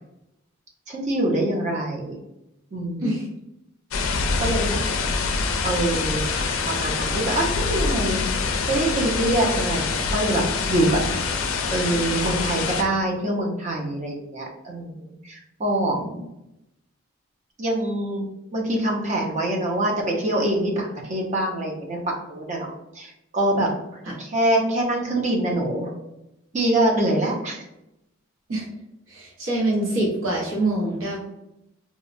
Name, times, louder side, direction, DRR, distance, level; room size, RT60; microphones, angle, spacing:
voice 1, 0.9-2.2 2.7-3.0 4.4-4.8 5.6-6.2 6.7-8.2 8.7-11.0 11.7-16.0 17.6-18.3 18.5-25.9 26.5-27.6, right 1 dB, 35° right, -1 dB, 0.5 m, -24 dB
sound 1, 3.9-12.8, left 4 dB, 75° left, 0.4 m, -25 dB
voice 2, 29.1-31.2, right 1 dB, 85° right, -3 dB, 0.9 m, -25 dB
2.7 x 2.0 x 2.5 m, 0.87 s
head